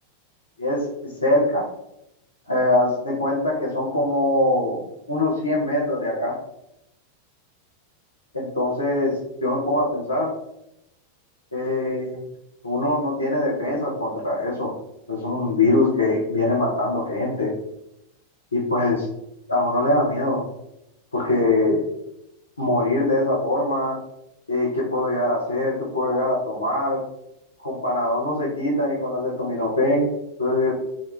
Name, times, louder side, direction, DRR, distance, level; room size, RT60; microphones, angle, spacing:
voice 1, 0.6-1.6 2.5-6.3 8.3-10.3 11.5-12.2 12.6-14.7 15.1-17.5 18.5-19.1 19.5-20.4 21.1-21.8 22.6-24.0 24.5-27.0 27.6-30.1 30.4-30.7, left 2 dB, 80° left, -4 dB, 0.5 m, -23 dB
2.1 x 2.1 x 3.1 m, 0.84 s
figure-of-eight pair, 90°, 0 cm